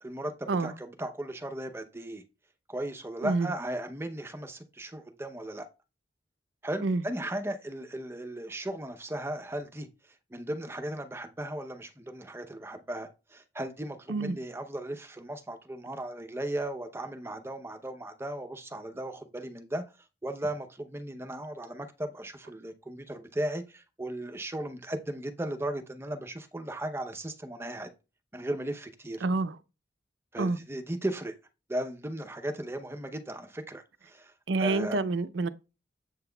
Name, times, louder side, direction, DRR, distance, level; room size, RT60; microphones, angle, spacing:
voice 1, 0.0-2.2 2.7-5.6 6.6-19.8 20.2-27.9 28.3-29.2 30.3-31.3 31.7-34.3 34.6-35.0, right 1 dB, 15° right, 0.7 m, -36 dB
voice 2, 29.2-29.5 30.4-30.6 34.5-35.5, right 3 dB, 80° right, 0.5 m, -27 dB
7.8 x 5.7 x 2.3 m
head